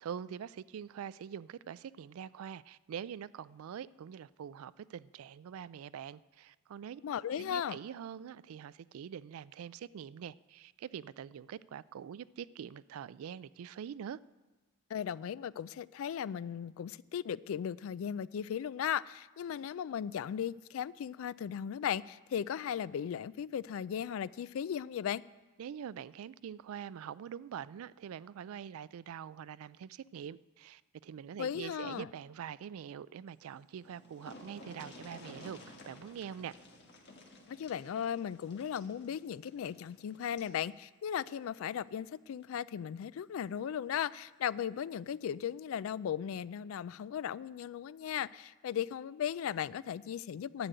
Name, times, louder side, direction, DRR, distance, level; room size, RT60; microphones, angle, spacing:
voice 1, 0.0-7.0 7.4-14.2 25.6-35.6 35.9-36.5, right 8 dB, 85° right, 0.3 m, -44 dB
voice 2, 7.0-7.8 14.9-25.2 31.4-32.1 37.5-50.7, left 8 dB, 75° left, 0.3 m, -37 dB
sound 1, 33.5-33.6 33.8-40.6 41.9-42.0 42.4-42.5, left 1 dB, 50° left, 1.5 m, -54 dB
11.0 x 6.8 x 9.0 m
head